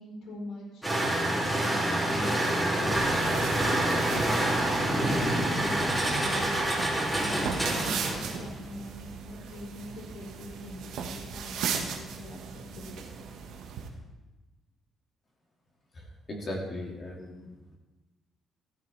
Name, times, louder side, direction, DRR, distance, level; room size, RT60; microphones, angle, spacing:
voice 1, 0.0-6.7 7.1-13.2, left 1 dB, 80° left, -1 dB, 4.5 m, -42 dB
sound 1, 0.8-8.5, right 1 dB, 5° left, 2.8 m, -27 dB
sound 2, 2.9-13.9, right 6 dB, 75° right, 1.5 m, -38 dB
voice 2, 16.3-17.8, left 1 dB, 30° left, -1 dB, 2.2 m, -38 dB
15.0 x 13.5 x 3.5 m, 1.1 s
cardioid pair, 175°, 0 cm